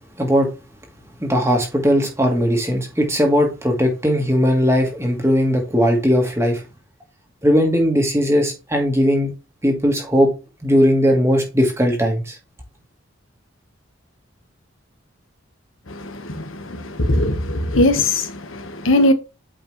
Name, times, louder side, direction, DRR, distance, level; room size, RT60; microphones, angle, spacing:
voice 1, 1.2-6.6 7.4-9.3 9.6-10.3 10.6-12.3, equal, 15° right, 1.5 m, -18 dB
voice 2, 15.9-19.1, left 1 dB, 80° left, 1.4 m, -20 dB
8.6 x 4.9 x 3.2 m
head